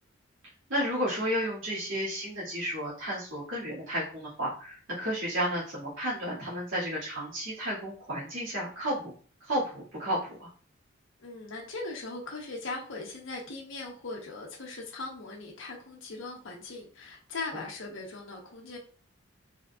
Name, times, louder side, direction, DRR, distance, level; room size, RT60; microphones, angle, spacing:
voice 1, 0.7-9.1 9.4-10.5 17.5-17.6, equal, 90° right, -8 dB, 2.0 m, -32 dB
voice 2, 11.2-18.8, left 3 dB, 75° left, -1 dB, 0.9 m, -39 dB
5.2 x 3.8 x 2.3 m, 0.43 s
head